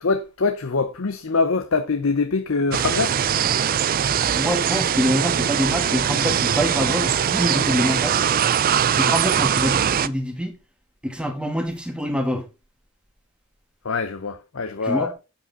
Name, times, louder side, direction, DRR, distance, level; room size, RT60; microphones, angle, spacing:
voice 1, 0.0-3.2 13.8-15.1, left 4 dB, 60° left, 0.7 m, -24 dB
sound 1, 2.7-10.1, right 8 dB, 40° right, 0.4 m, -21 dB
voice 2, 4.1-8.2 8.9-10.6 11.0-12.4 14.8-15.1, equal, 5° right, 1.6 m, -25 dB
8.5 x 7.6 x 3.9 m
head